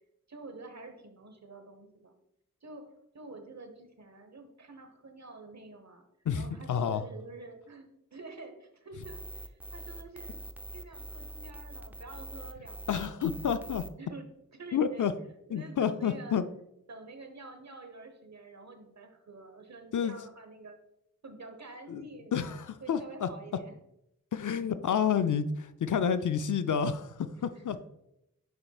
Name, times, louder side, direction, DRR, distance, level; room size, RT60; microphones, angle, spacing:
voice 1, 0.3-2.1 2.6-6.1 6.3-10.4 10.7-14.3 14.5-15.1 15.5-16.4 16.9-20.8 21.2-22.4 22.8-23.8 27.5-27.6, right 3 dB, 55° right, 1.0 m, -48 dB
voice 2, 6.3-7.0 12.9-13.9 14.7-15.1 15.5-16.4 19.9-20.1 21.9-22.1 22.3-23.3 24.3-27.8, left 7 dB, 65° left, 0.5 m, -29 dB
sound 1, 9.0-13.9, right 1 dB, 5° right, 0.5 m, -44 dB
9.5 x 4.4 x 2.3 m
cardioid pair, 45°, 33 cm